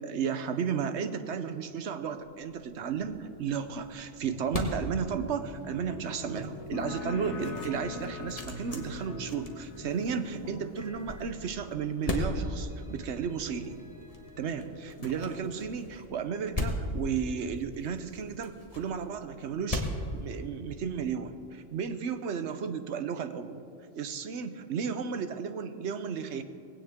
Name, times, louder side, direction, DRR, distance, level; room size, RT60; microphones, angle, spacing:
voice 1, 0.0-13.7 14.4-19.9 20.1-23.6 23.9-26.4, right 6 dB, 65° right, 10 dB, 1.1 m, -33 dB
sound 1, 2.4-21.0, left 1 dB, 30° left, 1.5 m, -39 dB
sound 2, 2.9-15.5, equal, 50° left, 2.4 m, -46 dB
sound 3, 6.7-14.0, left 6 dB, 70° left, 1.0 m, -44 dB
19.5 x 17.0 x 3.6 m, 2.6 s
omnidirectional pair, 1.3 m